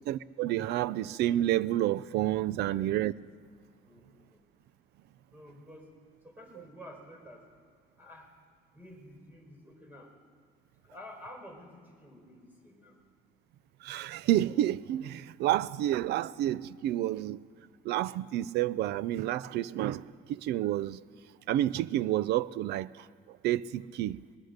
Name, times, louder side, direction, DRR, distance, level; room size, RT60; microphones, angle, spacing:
voice 1, 0.1-3.1 13.8-17.4 17.8-21.0 21.5-24.2, right 13 dB, 75° right, 0.6 m, -30 dB
voice 2, 2.5-2.9 3.8-4.4 5.3-5.9 6.2-7.5 8.0-8.3 8.7-10.1 10.8-13.0, left 1 dB, 10° right, 4.7 m, -50 dB
21.0 x 20.5 x 6.6 m
cardioid pair, 110°, 17 cm